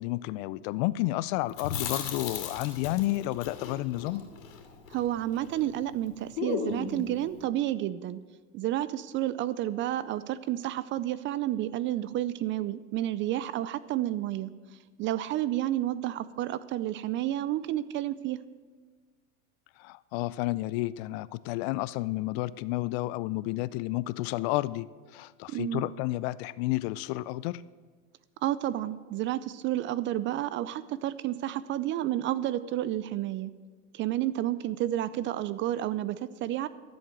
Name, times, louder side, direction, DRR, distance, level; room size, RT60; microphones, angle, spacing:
voice 1, 0.0-4.2 19.8-27.6, left 18 dB, 55° left, 18 dB, 0.5 m, -31 dB
Chewing mastication, 1.5-5.7 5.9-6.0 6.3-7.1, left 6 dB, 75° left, 2.8 m, -36 dB
voice 2, 4.9-8.2 8.5-14.5 15.0-18.4 25.5-25.8 28.4-33.5 33.9-36.7, right 13 dB, 30° right, 17 dB, 0.4 m, -30 dB
13.5 x 7.8 x 7.6 m, 1.5 s
hypercardioid pair, 110°, 39 cm